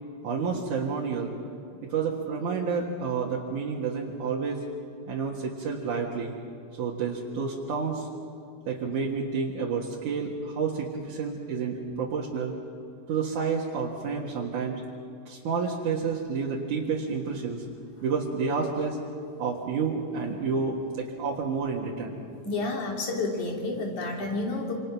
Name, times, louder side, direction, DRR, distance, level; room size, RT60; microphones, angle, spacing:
voice 1, 0.2-1.3 1.8-4.6 5.1-6.3 6.7-8.1 8.7-12.5 13.1-14.8 15.3-17.6 18.0-19.0 19.4-22.1, right 5 dB, 80° right, -3 dB, 3.3 m, -30 dB
voice 2, 22.4-24.7, left 2 dB, 70° left, 0 dB, 4.7 m, -30 dB
27.5 x 27.0 x 6.1 m, 2.6 s
omnidirectional pair, 3.5 m